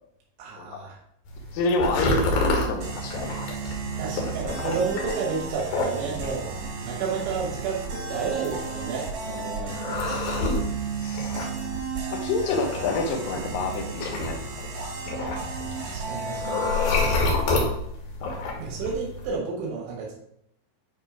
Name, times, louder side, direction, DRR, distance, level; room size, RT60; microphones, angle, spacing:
voice 1, 0.4-1.0 3.7-6.5 6.8-10.2 15.8-16.7 18.6-20.1, right 5 dB, 85° right, -3 dB, 3.7 m, -31 dB
sound 1, 1.3-19.3, left 2 dB, 65° left, 2.9 m, -30 dB
voice 2, 1.5-3.6 11.0-11.5 12.1-14.7, left 3 dB, 80° left, 2 dB, 2.0 m, -28 dB
sound 2, 2.8-17.6, right 5 dB, 55° right, 3.9 m, -34 dB
9.3 x 3.2 x 4.8 m, 0.74 s
omnidirectional pair, 5.2 m